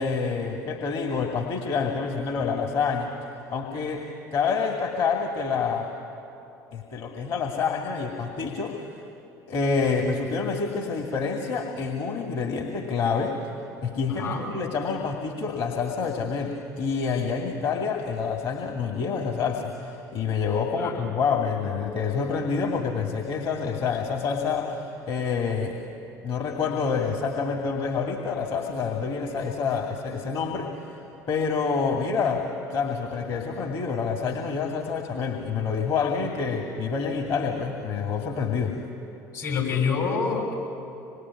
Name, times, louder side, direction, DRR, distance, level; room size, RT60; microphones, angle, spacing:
voice 1, 0.0-5.9 6.7-9.0 9.5-13.4 13.8-25.9 26.2-31.0 31.3-38.8, left 5 dB, 55° left, 2 dB, 2.5 m, -27 dB
voice 2, 14.0-14.5 20.7-21.0 39.3-40.5, left 5 dB, 75° left, -1 dB, 6.5 m, -27 dB
26.0 x 21.0 x 10.0 m, 2.9 s
figure-of-eight pair, 60°, 10 cm